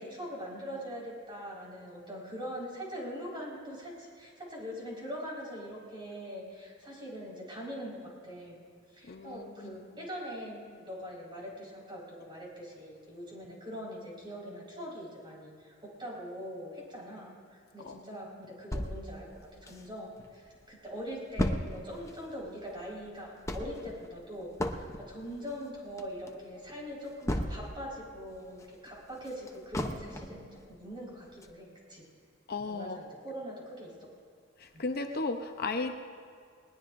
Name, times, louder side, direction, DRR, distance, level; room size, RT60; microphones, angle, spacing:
voice 1, 0.0-8.6 8.9-32.0 32.7-34.1 34.7-34.8, equal, 25° right, -4 dB, 4.8 m, -42 dB
voice 2, 9.1-9.8 17.8-18.0 32.5-33.0 34.8-35.9, left 3 dB, 50° left, 5 dB, 0.8 m, -34 dB
sound 1, 18.7-20.3 20.6-20.7 20.9-27.9 28.3-30.5 30.9-31.0 31.4-31.5, left 1 dB, 15° left, 0.8 m, -36 dB
20.5 x 19.5 x 2.6 m, 2.2 s
head